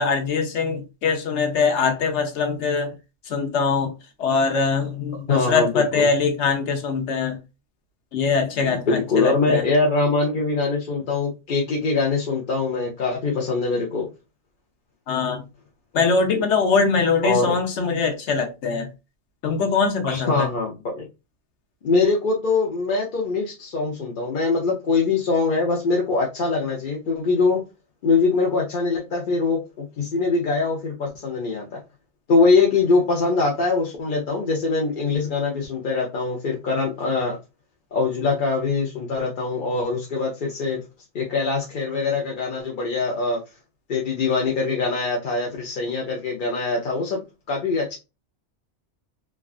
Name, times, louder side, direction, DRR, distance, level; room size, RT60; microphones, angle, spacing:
voice 1, 0.0-3.0 3.3-3.9 4.2-7.4 8.1-9.6 15.1-15.5 15.9-18.9 19.4-20.5, left 5 dB, 85° left, 1.1 m, -22 dB
voice 2, 5.3-6.1 8.9-14.1 17.2-17.5 20.0-21.1 21.8-27.6 28.0-31.8 32.3-37.4 37.9-40.8 41.1-43.4 43.9-47.2 47.5-48.0, left 3 dB, 55° left, 0.7 m, -23 dB
3.2 x 2.4 x 2.3 m
omnidirectional pair, 1.2 m